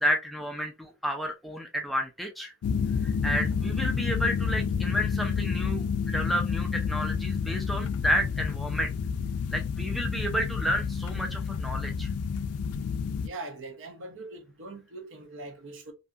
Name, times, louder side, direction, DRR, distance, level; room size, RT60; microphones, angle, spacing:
voice 1, 0.0-2.5 3.0-8.9 9.5-12.1, equal, ahead, 0.3 m, -31 dB
sound 1, 2.6-13.3, left 6 dB, 75° left, 0.3 m, -29 dB
voice 2, 13.2-15.9, right 2 dB, 55° right, 0.7 m, -41 dB
2.7 x 2.6 x 2.3 m
head